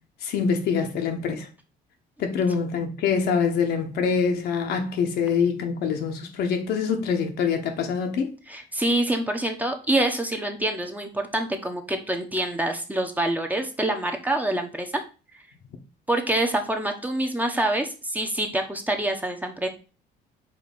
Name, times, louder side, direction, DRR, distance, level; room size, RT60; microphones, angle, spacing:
voice 1, 0.2-1.5 2.2-8.3, left 6 dB, 75° left, 1.3 m, -25 dB
voice 2, 8.5-15.0 16.1-19.7, right 1 dB, 10° right, 1.0 m, -26 dB
5.0 x 3.7 x 5.2 m
cardioid pair, 110°, 17 cm